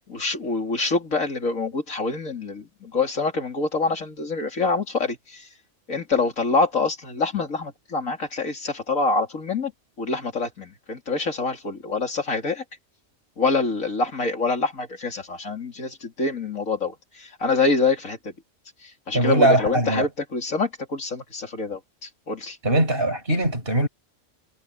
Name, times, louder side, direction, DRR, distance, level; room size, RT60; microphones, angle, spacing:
voice 1, 0.0-5.5 5.9-9.7 10.0-12.6 13.4-18.3 18.8-22.6, left 3 dB, 90° left, 3.5 m, -26 dB
voice 2, 19.1-20.1 22.6-23.9, right 1 dB, 45° right, 6.0 m, -21 dB
omnidirectional pair, 1.4 m